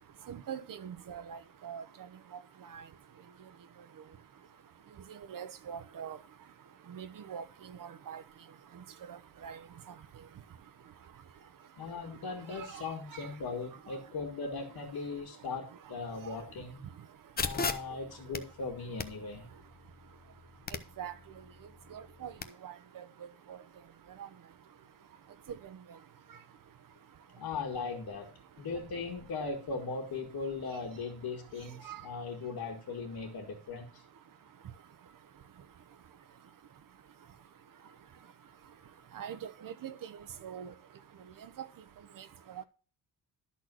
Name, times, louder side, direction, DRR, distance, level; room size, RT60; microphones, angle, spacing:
voice 1, 0.3-1.8 2.7-2.8 5.3-6.2 6.9-7.4 7.8-8.2 9.4-9.6 12.6-12.8 21.0-21.1 21.9-22.3 22.6-23.0 23.5-23.6 31.8-32.0 39.1-39.4 39.6-39.9 40.4-40.7 42.5-42.6, right 8 dB, 55° right, 1.0 m, -42 dB
voice 2, 11.8-16.8 17.4-19.4 27.3-28.3 28.6-34.0, left 4 dB, 60° left, 2.0 m, -39 dB
sound 1, 17.4-22.4, left 4 dB, 25° left, 0.7 m, -40 dB
12.0 x 4.2 x 6.2 m
cardioid pair, 125°, 40 cm